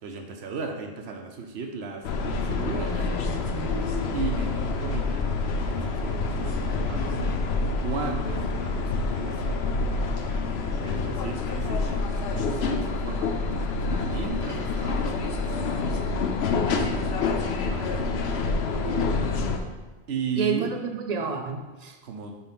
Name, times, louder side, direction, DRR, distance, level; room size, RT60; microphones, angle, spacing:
voice 1, 0.0-3.0 4.1-5.3 5.7-7.2 7.8-9.6 10.8-15.7 17.6-18.0 20.1-20.7 22.0-22.4, right 5 dB, 80° right, 4 dB, 1.0 m, -35 dB
sound 1, 2.0-19.6, left 3 dB, 80° left, 0.9 m, -27 dB
voice 2, 2.9-4.0 18.7-19.6 20.4-22.0, right 4 dB, 45° right, 4 dB, 0.8 m, -32 dB
5.5 x 4.3 x 5.8 m, 1.2 s
omnidirectional pair, 1.1 m